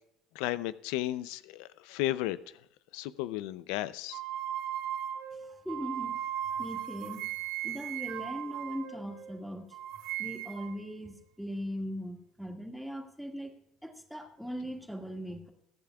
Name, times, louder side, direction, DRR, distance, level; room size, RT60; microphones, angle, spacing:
voice 1, 0.3-2.4 2.9-4.2, left 15 dB, 85° left, 15 dB, 0.5 m, -34 dB
sound 1, 4.1-9.4 9.7-10.8, right 11 dB, 70° right, 1.1 m, -37 dB
voice 2, 5.3-6.3 6.6-7.3 7.6-9.7 10.2-13.5 13.8-15.5, equal, ahead, 2 dB, 1.9 m, -39 dB
22.5 x 10.5 x 2.3 m, 0.75 s
cardioid pair, 150°, 0 cm